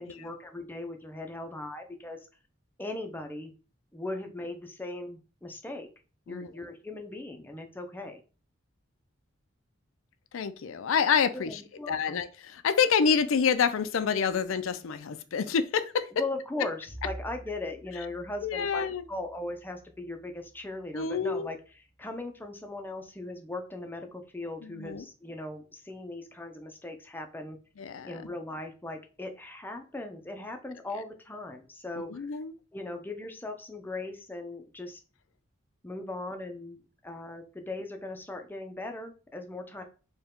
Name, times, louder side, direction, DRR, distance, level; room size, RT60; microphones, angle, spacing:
voice 1, 0.0-2.3 2.8-3.5 3.9-5.9 6.3-8.2 11.3-12.2 16.1-21.6 22.0-27.6 28.0-32.4 32.7-35.0 35.8-39.8, left 2 dB, 10° left, 4 dB, 0.5 m, -39 dB
voice 2, 10.3-11.6 11.9-16.1 18.4-19.0 20.9-21.5 24.6-25.1 27.8-28.2 32.1-32.5, left 6 dB, 85° left, 12 dB, 0.4 m, -27 dB
Bowed string instrument, 16.9-21.4, right 1 dB, 55° right, 1.2 m, -48 dB
4.4 x 2.2 x 3.6 m, 0.35 s
head